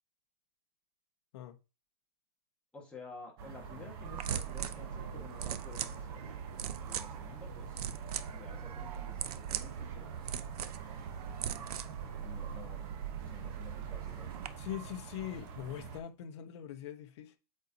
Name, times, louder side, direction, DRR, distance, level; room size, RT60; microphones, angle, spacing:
voice 1, 2.7-6.4 6.8-7.8 8.3-10.3 12.2-12.8 13.2-14.8, left 3 dB, 5° left, 1.5 m, -52 dB
sound 1, 3.4-16.0, right 6 dB, 35° right, 1.0 m, -46 dB
sound 2, 4.0-14.5, right 9 dB, 75° right, 0.7 m, -40 dB
voice 2, 14.6-17.4, left 11 dB, 45° left, 1.0 m, -42 dB
8.1 x 4.2 x 2.8 m
hypercardioid pair, 160°, 20 cm